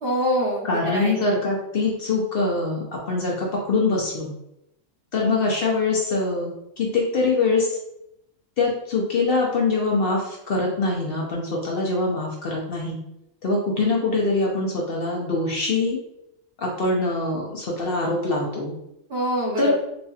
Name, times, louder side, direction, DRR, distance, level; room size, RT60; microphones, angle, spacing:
voice 1, 0.0-1.2 19.1-19.7, equal, 55° right, -2 dB, 1.1 m, -25 dB
voice 2, 0.6-4.3 5.1-6.5 6.8-7.8 8.6-13.0 13.4-16.0 16.6-18.7 19.6-19.7, left 3 dB, 55° left, -2 dB, 0.7 m, -23 dB
4.0 x 2.8 x 2.3 m, 0.83 s
omnidirectional pair, 1.3 m